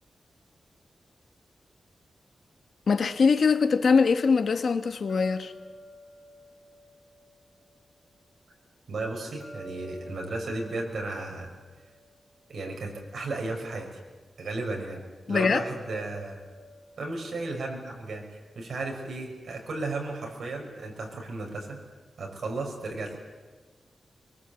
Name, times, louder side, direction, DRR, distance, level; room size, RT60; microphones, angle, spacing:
voice 1, 2.9-5.5 15.3-15.7, left 5 dB, 65° left, 1.3 m, -22 dB
sound 1, 5.1-8.2 9.4-12.9 15.4-18.5, equal, 15° left, 3.5 m, -49 dB
voice 2, 8.9-11.5 12.5-13.9 14.4-15.0 15.3-16.4 17.0-21.8 22.2-23.2, right 2 dB, 75° right, 6.1 m, -34 dB
24.5 x 23.5 x 8.3 m
wide cardioid pair, 140°, 0 cm